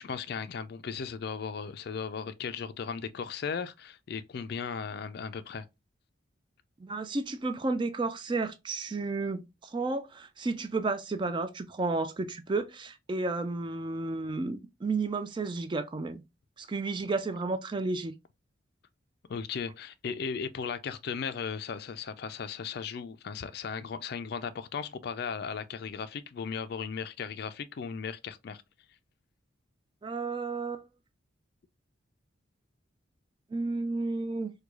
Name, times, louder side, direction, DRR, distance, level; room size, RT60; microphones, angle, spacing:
voice 1, 0.0-5.7 19.3-28.6, left 6 dB, 50° left, 0.3 m, -36 dB
voice 2, 6.8-9.4 9.7-16.2 16.6-18.1 30.0-30.8 33.5-34.5, right 3 dB, 25° right, 0.3 m, -32 dB
4.6 x 2.2 x 2.3 m
head